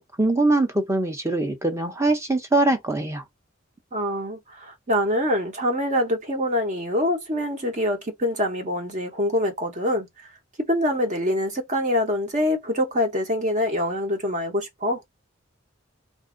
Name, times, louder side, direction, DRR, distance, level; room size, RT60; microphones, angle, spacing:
voice 1, 0.0-3.2, right 2 dB, 15° right, 0.8 m, -22 dB
voice 2, 3.9-10.1 10.7-15.0, left 1 dB, 40° right, 1.0 m, -25 dB
2.7 x 2.6 x 3.8 m
head